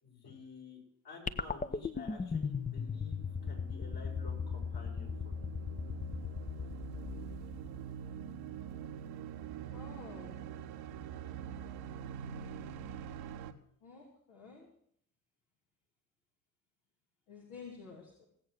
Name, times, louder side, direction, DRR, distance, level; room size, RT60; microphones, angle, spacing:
voice 1, 0.0-5.5, left 4 dB, 55° left, -2 dB, 6.4 m, -51 dB
sound 1, 1.3-7.8, left 6 dB, 20° left, 0.8 m, -38 dB
sound 2, 2.4-13.5, right 8 dB, 65° right, 1.0 m, -45 dB
voice 2, 9.7-10.6 13.8-14.7 17.3-18.3, left 4 dB, 70° left, -2 dB, 2.8 m, -51 dB
17.0 x 8.1 x 6.5 m, 0.66 s
hypercardioid pair, 50°, 41 cm